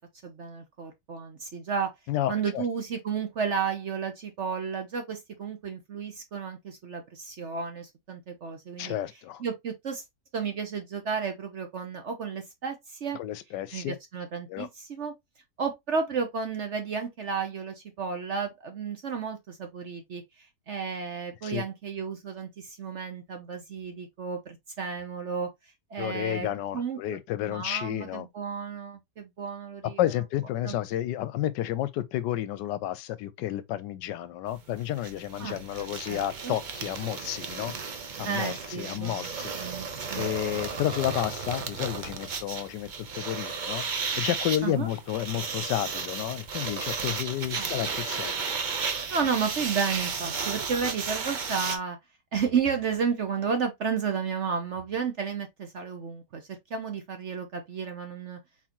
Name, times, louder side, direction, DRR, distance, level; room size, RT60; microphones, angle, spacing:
voice 1, 0.2-1.9 2.3-8.9 9.4-10.0 10.3-13.2 13.7-15.1 15.6-25.5 25.9-26.5 26.7-27.2 27.5-30.0 30.6-30.8 35.4-35.6 36.1-36.5 38.2-39.3 39.6-40.3 44.6-44.9 47.5-47.7 49.1-52.0 52.3-58.4, right 6 dB, 50° right, 0.9 m, -32 dB
voice 2, 2.1-2.6 8.8-9.4 13.1-14.0 14.5-14.7 21.4-21.6 26.0-28.3 30.0-37.7 38.2-39.7 40.1-43.9 44.2-48.4, left 13 dB, 80° left, 1.2 m, -31 dB
sound 1, 34.5-34.6 34.8-51.8, right 5 dB, 75° right, 0.4 m, -34 dB
4.3 x 4.0 x 2.9 m
omnidirectional pair, 1.9 m